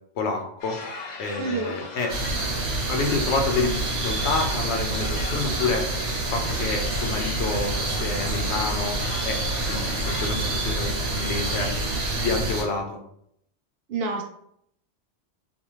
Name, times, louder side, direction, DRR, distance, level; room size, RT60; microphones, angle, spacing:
voice 1, 0.1-0.8 1.2-2.1 2.9-6.0 6.3-9.0 9.2-9.4 9.7-11.7 12.2-13.0, left 4 dB, 80° left, 3 dB, 0.9 m, -28 dB
sound 1, 0.6-12.3, left 3 dB, 55° left, 0.5 m, -39 dB
voice 2, 1.4-1.7 13.9-14.2, right 4 dB, 65° right, 3 dB, 0.7 m, -28 dB
sound 2, 2.1-12.6, right 2 dB, 85° right, 1.0 m, -27 dB
2.5 x 2.3 x 2.9 m, 0.71 s
omnidirectional pair, 1.2 m